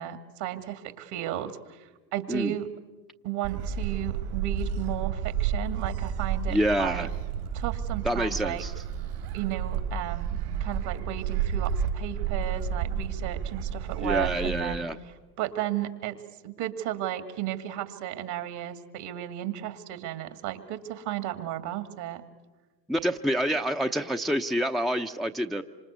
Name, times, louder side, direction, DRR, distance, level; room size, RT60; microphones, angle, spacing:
voice 1, 0.0-2.7 3.2-7.1 7.5-8.6 9.3-14.8 15.4-22.2, right 12 dB, 55° right, 10 dB, 2.3 m, -34 dB
Gull seagull, 3.4-14.6, right 7 dB, 70° right, 4.6 m, -31 dB
voice 2, 6.5-7.1 8.0-8.7 14.0-15.0 22.9-25.6, equal, ahead, 6 dB, 0.8 m, -27 dB
26.5 x 26.0 x 8.2 m, 1.3 s
hypercardioid pair, 85°, 48 cm